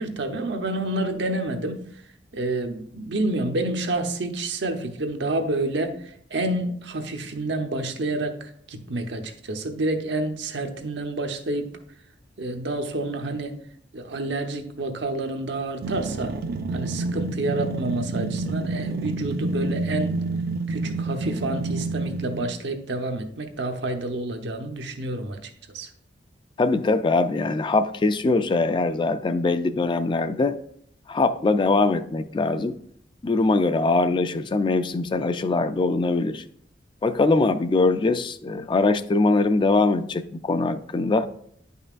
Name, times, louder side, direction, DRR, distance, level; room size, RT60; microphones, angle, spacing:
voice 1, 0.0-1.8 2.3-11.8 12.4-13.6 13.9-16.4 16.7-20.2 20.7-25.9, right 2 dB, 80° right, 5 dB, 0.8 m, -29 dB
sound 1, 15.8-22.6, right 2 dB, 60° right, 0.4 m, -28 dB
voice 2, 26.6-30.6 31.1-32.7 33.2-36.4 37.0-41.3, left 3 dB, 25° left, 11 dB, 0.3 m, -22 dB
9.7 x 5.5 x 2.4 m, 0.65 s
head